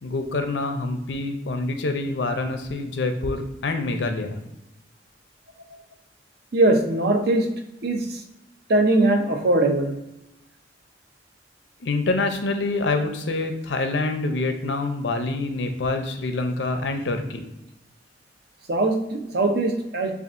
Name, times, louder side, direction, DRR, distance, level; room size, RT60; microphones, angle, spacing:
voice 1, 0.0-4.4 11.8-17.4, left 2 dB, 75° left, 6 dB, 0.6 m, -26 dB
voice 2, 6.5-7.5 7.8-8.0 8.7-9.9 18.7-20.1, right 2 dB, 60° right, 4 dB, 0.7 m, -20 dB
6.9 x 2.5 x 2.5 m, 0.89 s
head